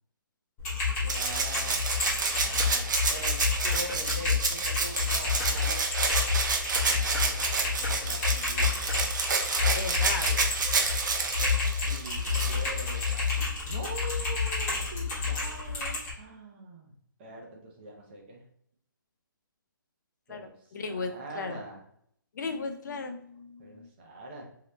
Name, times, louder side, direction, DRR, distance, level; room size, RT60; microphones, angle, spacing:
Typing, 0.6-16.1, left 4 dB, 15° left, 1.2 m, -30 dB
voice 1, 1.0-1.8 2.3-5.9 7.6-8.8 11.9-13.3 13.6-16.9 17.2-18.4 20.3-20.5 20.8-21.8 23.6-24.5, right 1 dB, 30° right, -1 dB, 0.8 m, -43 dB
Rattle (instrument), 1.1-13.4 14.8-14.9, right 4 dB, 60° right, 0.7 m, -29 dB
voice 2, 9.7-10.5 20.3-21.6 22.3-23.9, left 4 dB, 55° left, 6 dB, 0.6 m, -36 dB
3.1 x 2.9 x 3.2 m, 0.68 s
hypercardioid pair, 160°, 11 cm